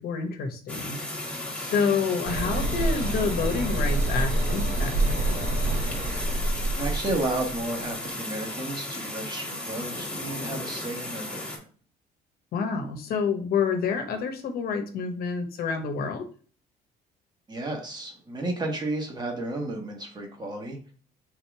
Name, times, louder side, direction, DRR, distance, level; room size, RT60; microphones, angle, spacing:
voice 1, 0.0-1.0 1.5-5.5 12.5-16.2, left 5 dB, 65° left, 5 dB, 1.0 m, -28 dB
sound 1, 0.7-11.6, left 1 dB, 5° left, 1.5 m, -35 dB
sound 2, 2.2-7.6, right 2 dB, 70° right, 2.2 m, -27 dB
voice 2, 6.7-11.4 17.5-20.8, right 2 dB, 25° right, 1 dB, 1.4 m, -32 dB
3.7 x 2.9 x 4.7 m, 0.41 s
cardioid pair, 110°, 17 cm